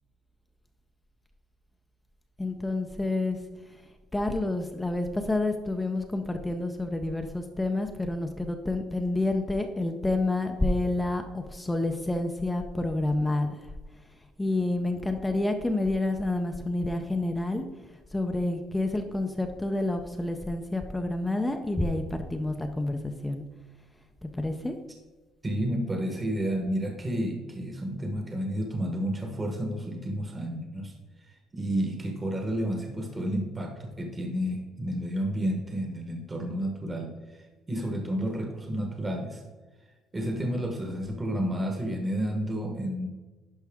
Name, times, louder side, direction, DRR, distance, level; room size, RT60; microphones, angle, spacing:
voice 1, 2.4-3.4 4.1-13.6 14.4-17.7 18.1-23.4 24.2-24.8, left 2 dB, 10° left, 5 dB, 0.5 m, -29 dB
voice 2, 25.4-30.9 31.3-37.4 37.7-39.4 40.1-43.1, equal, 15° right, 3 dB, 1.0 m, -31 dB
10.5 x 5.6 x 3.5 m, 1.3 s
cardioid pair, 160°, 0 cm